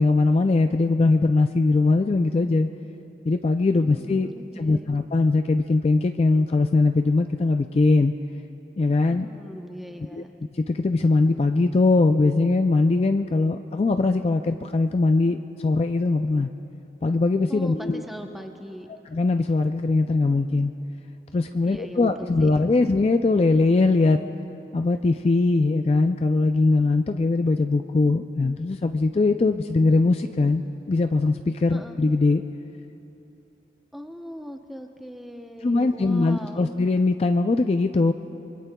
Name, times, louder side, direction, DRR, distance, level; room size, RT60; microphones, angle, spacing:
voice 1, 0.0-2.7 3.2-4.3 4.6-8.1 8.8-9.3 10.1-10.2 10.5-16.5 17.0-18.0 19.1-20.7 21.3-24.2 24.7-32.4 35.6-38.1, left 3 dB, 35° left, 7 dB, 0.3 m, -21 dB
voice 2, 3.8-4.9 9.1-10.3 17.5-18.9 21.7-22.8 31.7-32.0 33.9-36.7, equal, ahead, 3 dB, 0.8 m, -40 dB
25.5 x 23.5 x 2.3 m, 2.9 s
head